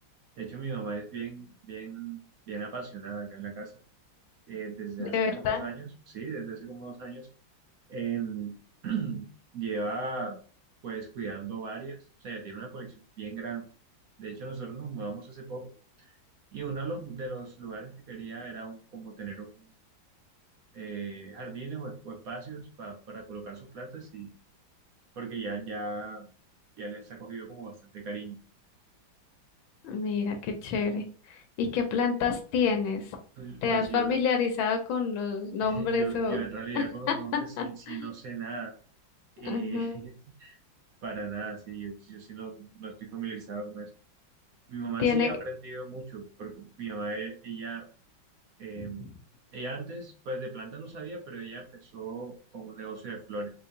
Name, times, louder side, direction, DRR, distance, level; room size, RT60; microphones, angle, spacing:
voice 1, 0.4-3.7 4.5-7.3 7.9-8.6 8.8-10.4 10.8-13.7 14.2-15.7 16.0-16.1 16.5-19.7 20.7-24.3 25.2-26.3 26.8-28.4 33.4-34.1 35.6-38.7 39.4-40.6 41.0-43.9 44.7-47.8 48.6-49.1 49.5-53.5, right 4 dB, 65° right, 1 dB, 0.9 m, -38 dB
voice 2, 5.0-5.6 29.8-33.1 33.6-36.4 36.7-38.1 39.4-40.0 45.0-45.3 48.8-48.9, left 5 dB, 80° left, 5 dB, 1.5 m, -28 dB
3.9 x 2.8 x 2.6 m, 0.42 s
omnidirectional pair, 2.2 m